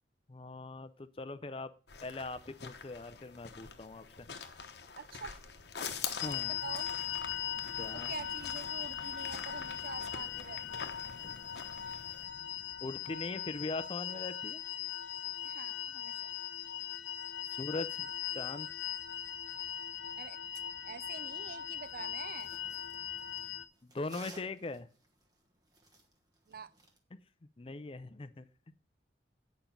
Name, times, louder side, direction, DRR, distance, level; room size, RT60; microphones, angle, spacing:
voice 1, 0.3-1.7 2.0-4.4 6.2-6.6 7.8-8.1 11.2-11.4 12.8-14.6 17.5-18.7 23.8-24.9 27.6-28.5, left 2 dB, 30° left, 0.5 m, -41 dB
sound 1, 1.9-12.3, left 6 dB, 60° left, 0.9 m, -45 dB
voice 2, 5.0-5.4 6.4-6.9 7.9-10.9 15.4-16.3 20.2-20.4 20.8-22.5 26.5-26.7, right 5 dB, 50° right, 0.4 m, -46 dB
sound 2, 6.2-23.6, left 10 dB, 80° left, 0.5 m, -39 dB
sound 3, 21.8-27.0, right 2 dB, 20° right, 1.2 m, -57 dB
8.9 x 5.2 x 5.9 m
head